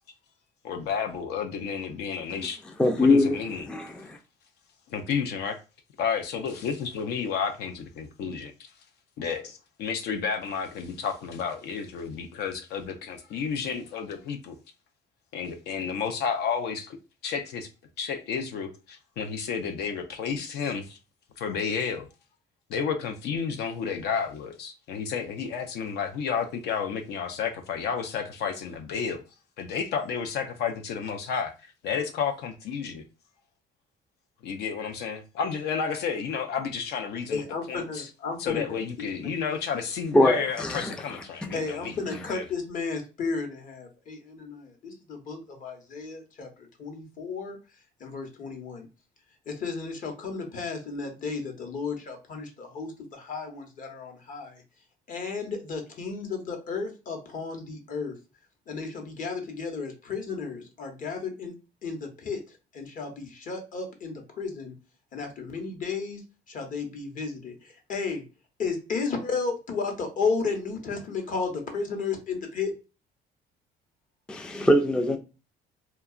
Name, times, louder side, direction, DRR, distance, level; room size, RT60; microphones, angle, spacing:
voice 1, 0.6-2.6 3.0-3.7 4.9-5.6 6.0-8.5 9.2-14.6 15.3-17.0 17.2-17.7 18.0-21.0 21.4-22.1 22.7-29.2 29.6-33.0 34.4-37.4 37.7-38.1 38.4-42.4, left 6 dB, 75° left, 0.5 m, -31 dB
voice 2, 2.8-3.4 3.7-4.2 40.1-41.0 74.3-75.2, left 1 dB, 5° left, 0.3 m, -22 dB
voice 3, 37.3-38.6 41.5-46.5 46.8-47.6 48.0-48.9 49.5-54.6 55.1-58.1 58.7-61.5 61.8-62.4 62.7-64.7 65.1-66.2 66.5-68.2 68.6-72.7, left 4 dB, 50° left, 0.9 m, -33 dB
2.8 x 2.2 x 2.3 m
cardioid pair, 110°, 17 cm